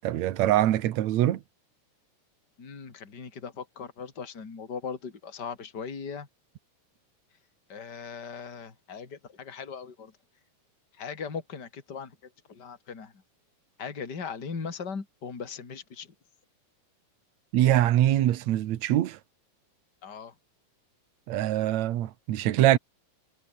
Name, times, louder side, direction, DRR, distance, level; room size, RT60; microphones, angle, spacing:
voice 1, 0.0-1.4 17.5-19.2 21.3-22.8, right 13 dB, 65° right, 2.3 m, -23 dB
voice 2, 2.6-6.3 7.7-10.1 10.9-13.2 13.8-16.1 20.0-20.3, left 6 dB, 30° left, 3.6 m, -39 dB
omnidirectional pair, 3.6 m